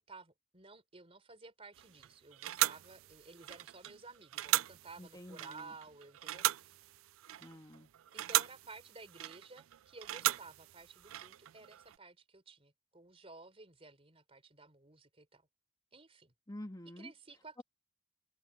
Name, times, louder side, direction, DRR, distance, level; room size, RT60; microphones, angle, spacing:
voice 1, 0.0-6.8 8.1-15.4 15.9-16.3 17.0-17.6, right 3 dB, 30° right, 4.0 m, -54 dB
sound 1, 1.7-12.0, right 14 dB, 90° right, 0.4 m, -37 dB
voice 2, 5.0-5.8 7.4-7.9 16.5-17.1 17.6-17.7, left 1 dB, 20° left, 1.9 m, -48 dB
head